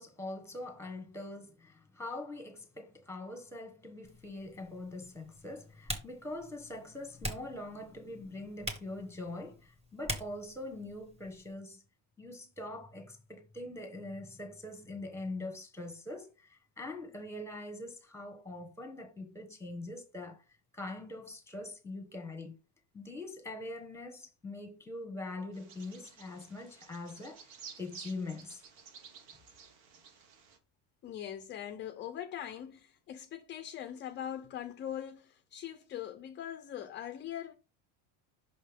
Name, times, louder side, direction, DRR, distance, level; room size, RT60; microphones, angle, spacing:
voice 1, 0.0-11.8 12.2-20.4 20.7-22.5 22.9-27.4 27.8-28.6, left 2 dB, 5° left, 1.2 m, -43 dB
Typing, 4.0-11.5, right 1 dB, 15° right, 1.3 m, -45 dB
Bird vocalization bird call bird song, 25.5-30.6, right 6 dB, 80° right, 1.7 m, -53 dB
voice 2, 31.0-37.5, left 10 dB, 25° left, 0.4 m, -41 dB
5.8 x 5.4 x 3.4 m
cardioid pair, 145°, 48 cm